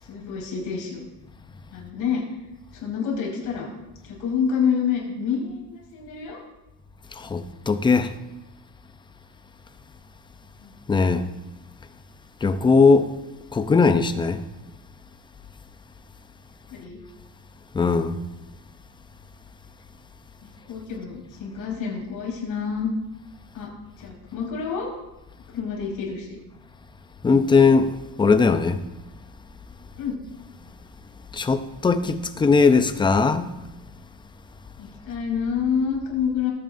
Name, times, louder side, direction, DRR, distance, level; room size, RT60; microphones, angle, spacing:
voice 1, 0.0-1.1 1.7-2.2 2.7-3.7 4.0-6.4 10.6-10.7 16.7-17.0 20.4-22.9 23.5-23.7 24.0-24.9 25.5-26.4 30.0-30.2 34.8-36.5, left 6 dB, 75° left, 5.0 m, -28 dB
voice 2, 7.1-8.1 10.9-11.2 12.4-13.1 13.5-14.4 17.7-18.2 27.2-28.8 31.3-33.5, left 4 dB, 15° left, 0.5 m, -19 dB
20.5 x 9.1 x 2.6 m
cardioid pair, 160°, 32 cm